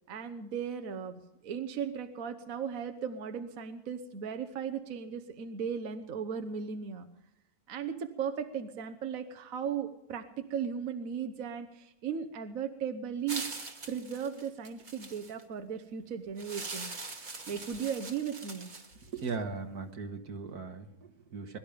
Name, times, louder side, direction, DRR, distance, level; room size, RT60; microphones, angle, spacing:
voice 1, 0.1-7.1 7.7-13.5 13.9-16.9 17.5-18.7, right 7 dB, 65° right, 7 dB, 1.3 m, -36 dB
sound 1, 13.3-15.4 16.4-19.3, right 3 dB, 30° right, 1.5 m, -42 dB
voice 2, 19.1-21.6, right 4 dB, 80° right, 5 dB, 2.1 m, -38 dB
22.0 x 12.0 x 5.1 m, 0.91 s
omnidirectional pair, 1.6 m